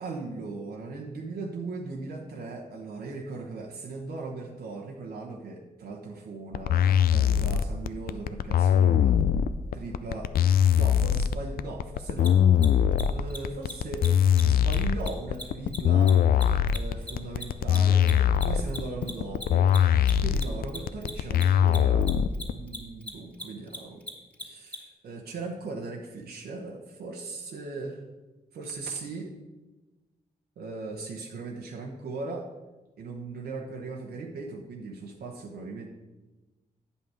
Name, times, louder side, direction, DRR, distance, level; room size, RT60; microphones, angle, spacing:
voice 1, 0.0-9.2 9.7-10.3 10.7-12.4 13.1-14.1 14.5-16.2 16.7-19.7 20.2-22.1 22.5-24.0 24.4-28.0 28.5-29.3 30.6-32.5 33.0-35.9, right 3 dB, 80° right, -1 dB, 1.0 m, -38 dB
sound 1, 6.5-22.5, left 9 dB, 70° left, 0.4 m, -22 dB
Mechanisms, 12.2-12.3 12.6-12.7 12.9-13.0 13.3-13.4 13.6-13.7 14.0-14.1 14.3-14.4 14.7-17.4 17.7-24.8, left 1 dB, 10° left, 2.0 m, -38 dB
8.9 x 5.4 x 4.8 m, 1.2 s
cardioid pair, 55°, 16 cm